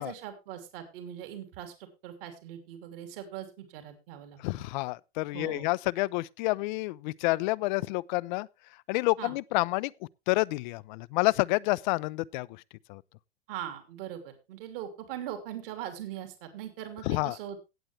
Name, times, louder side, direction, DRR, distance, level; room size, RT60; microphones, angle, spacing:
voice 1, 0.0-4.7 5.3-5.7 9.2-9.3 13.5-17.7, right 10 dB, 60° right, 3.0 m, -41 dB
voice 2, 4.4-8.5 8.9-9.9 10.3-12.6 12.9-13.0 17.0-17.4, left 22 dB, 45° left, 0.5 m, -29 dB
17.0 x 7.9 x 3.3 m
hypercardioid pair, 125°, 32 cm